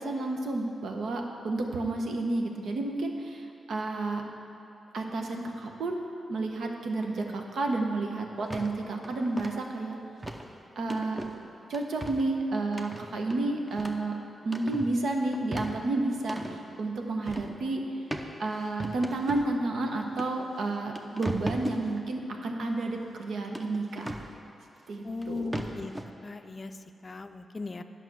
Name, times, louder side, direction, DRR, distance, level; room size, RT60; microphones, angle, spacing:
voice 1, 0.0-4.2 4.9-6.0 6.3-10.0 10.8-11.2 11.7-14.2 14.4-16.4 16.8-17.8 18.4-24.3 24.9-25.5, right 2 dB, 75° right, 2 dB, 1.0 m, -31 dB
sound 1, 8.5-8.7 9.0-9.5 10.2-10.5 10.9-11.3 11.7-12.3 12.7-14.1 14.4-14.9 15.3-16.6 17.3-17.6 18.1-18.3 18.8-19.5 20.2-20.3 20.7-21.8 23.5-24.3 25.2-25.3 25.5-26.0, right 1 dB, 15° right, 0.7 m, -37 dB
voice 2, 25.0-25.9 26.2-26.8 27.0-27.8, left 3 dB, 35° left, 8 dB, 0.4 m, -37 dB
9.2 x 5.9 x 6.2 m, 2.7 s
cardioid pair, 85°, 0 cm